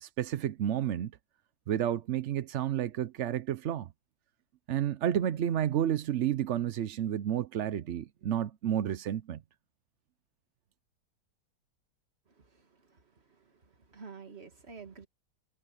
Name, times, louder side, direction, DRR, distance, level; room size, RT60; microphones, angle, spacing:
voice 1, 0.0-1.1 1.7-3.9 4.7-9.4, right 10 dB, 60° right, 0.8 m, -31 dB
voice 2, 12.4-13.0 13.3-13.5 13.9-15.1, right 5 dB, 40° right, 2.1 m, -49 dB
omnidirectional pair, 1.8 m